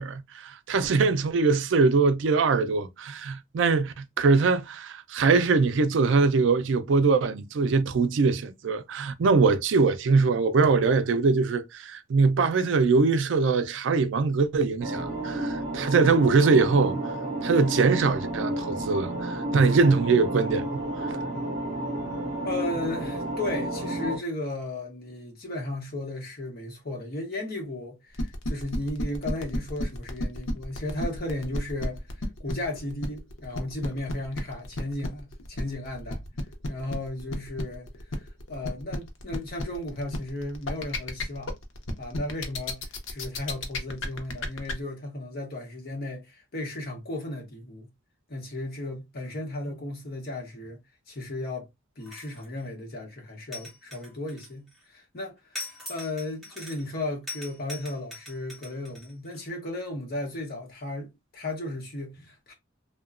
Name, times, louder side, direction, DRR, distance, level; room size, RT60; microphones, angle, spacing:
voice 1, 0.0-17.1 17.4-21.2, right 4 dB, 70° right, 0.4 m, -22 dB
sound 1, 14.8-24.2, right 1 dB, 35° right, 1.0 m, -31 dB
voice 2, 22.4-36.2 36.7-41.5 42.0-47.9 48.3-50.8 51.1-51.7 52.0-55.4 55.9-62.5, left 2 dB, 50° left, 0.9 m, -35 dB
sound 2, 28.1-44.7, left 1 dB, 85° left, 0.6 m, -32 dB
sound 3, 52.0-52.6 53.5-54.8 55.5-56.9 57.3-59.4, left 2 dB, ahead, 1.1 m, -41 dB
2.9 x 2.1 x 2.4 m
head